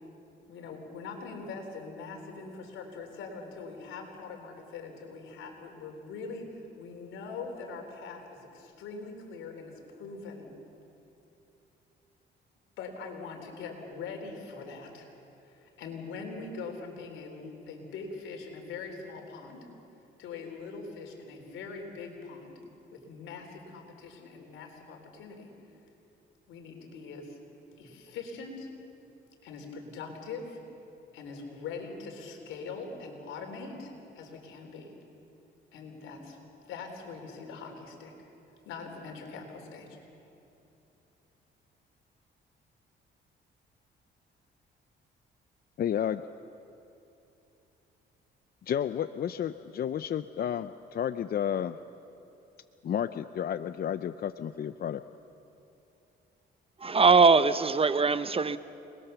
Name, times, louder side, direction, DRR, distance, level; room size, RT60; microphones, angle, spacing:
voice 1, 0.5-10.5 12.8-15.1 15.4-19.7 20.2-22.6 22.9-25.5 26.5-27.4 27.8-28.7 29.4-30.6 31.1-34.9 35.7-36.4 36.7-38.3 38.7-40.0, left 4 dB, 90° left, 4.0 m, -42 dB
voice 2, 45.8-46.2 48.7-51.8 52.8-55.0, left 9 dB, 50° left, 0.6 m, -31 dB
voice 3, 56.8-58.6, right 4 dB, 30° right, 0.8 m, -21 dB
29.0 x 20.5 x 7.0 m
cardioid pair, 90°, 20 cm